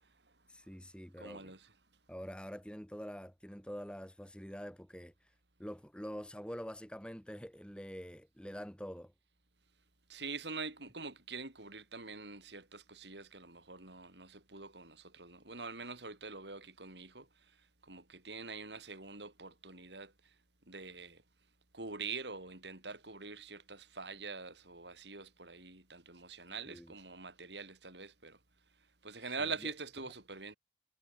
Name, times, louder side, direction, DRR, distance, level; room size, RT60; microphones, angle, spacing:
voice 1, 0.5-1.5 2.1-5.1 5.6-9.1 26.7-26.9, equal, 5° left, 4.5 m, -46 dB
voice 2, 1.2-1.7 10.1-17.3 17.8-20.1 20.7-21.2 21.7-28.4 29.0-30.6, right 4 dB, 85° right, 8.0 m, -45 dB
head